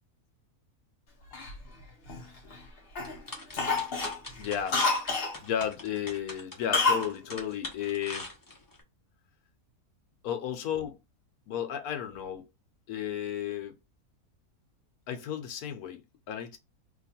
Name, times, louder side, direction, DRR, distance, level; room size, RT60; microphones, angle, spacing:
Cough, 1.3-2.6 3.0-3.2 3.5-5.4 6.7-7.1 7.4-7.5, left 3 dB, 45° left, 0.9 m, -28 dB
sound 1, 3.0-8.8, left 2 dB, 20° left, 0.6 m, -43 dB
voice 1, 4.4-4.8 5.4-8.3 10.2-11.0 11.5-12.5 12.9-13.8 15.1-16.6, left 9 dB, 75° left, 1.2 m, -33 dB
2.9 x 2.4 x 4.2 m
omnidirectional pair, 1.6 m